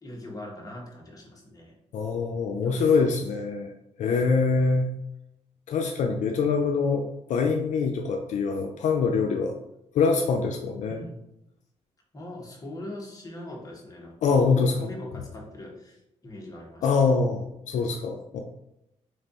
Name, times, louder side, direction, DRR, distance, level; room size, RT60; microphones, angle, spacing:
voice 1, 0.0-1.7 2.6-3.2 10.9-11.2 12.1-17.0, left 1 dB, 30° left, -1 dB, 1.4 m, -41 dB
voice 2, 1.9-3.7 4.0-4.9 5.7-9.6 9.9-11.0 14.2-14.7 16.8-18.4, left 4 dB, 75° left, 4 dB, 0.5 m, -24 dB
3.7 x 3.3 x 4.0 m, 0.83 s
cardioid pair, 80°, 13 cm